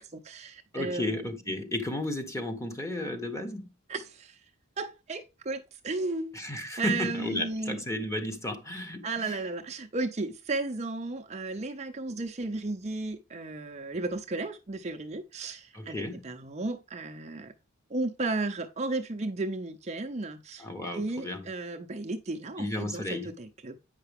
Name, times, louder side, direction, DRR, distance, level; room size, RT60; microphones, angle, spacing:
voice 1, 0.0-1.3 3.9-4.4 4.8-6.4 6.8-7.8 9.0-17.5 17.9-20.7 20.9-23.8, right 3 dB, 30° right, 0.6 m, -34 dB
voice 2, 0.7-3.7 6.3-9.3 15.7-16.2 20.6-21.4 22.6-23.3, left 1 dB, 15° left, 1.3 m, -33 dB
9.0 x 5.6 x 3.5 m
head